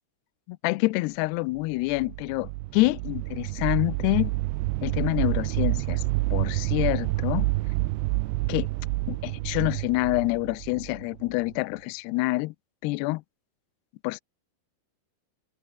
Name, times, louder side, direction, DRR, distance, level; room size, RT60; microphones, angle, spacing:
voice 1, 0.5-4.3 4.8-6.0 6.3-7.5 8.5-8.7 9.1-12.5 12.8-13.2 14.0-14.2, left 22 dB, 90° left, 2.3 m, -27 dB
sound 1, 1.7-11.5, right 20 dB, 80° right, 2.7 m, -28 dB
omnidirectional pair, 5.5 m